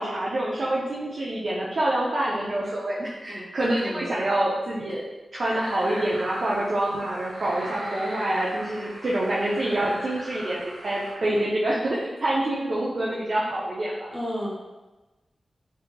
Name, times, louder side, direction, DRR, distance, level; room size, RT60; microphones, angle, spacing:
voice 1, 0.0-5.0 5.3-14.1, right 1 dB, 60° right, -6 dB, 0.5 m, -26 dB
voice 2, 3.8-4.1 7.8-8.1 11.2-11.5 14.1-14.5, equal, 15° left, -6 dB, 0.8 m, -34 dB
sound 1, 5.4-11.1, right 1 dB, 80° right, 1.0 m, -39 dB
3.6 x 2.8 x 2.2 m, 1.1 s
wide cardioid pair, 70°, 0 cm